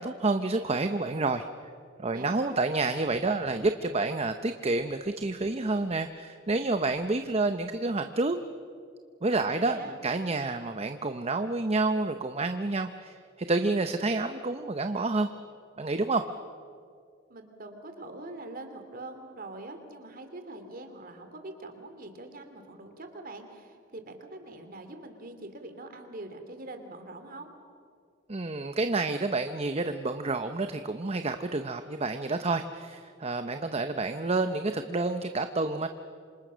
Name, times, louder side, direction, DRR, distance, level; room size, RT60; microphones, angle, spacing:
voice 1, 0.0-1.5 2.0-8.4 9.2-15.3 15.8-16.2 28.3-35.9, right 3 dB, 30° right, 8 dB, 0.7 m, -29 dB
voice 2, 2.1-2.6 9.3-10.0 17.3-27.5, right 2 dB, 50° right, 6 dB, 2.8 m, -44 dB
27.0 x 26.0 x 6.3 m, 2.3 s
head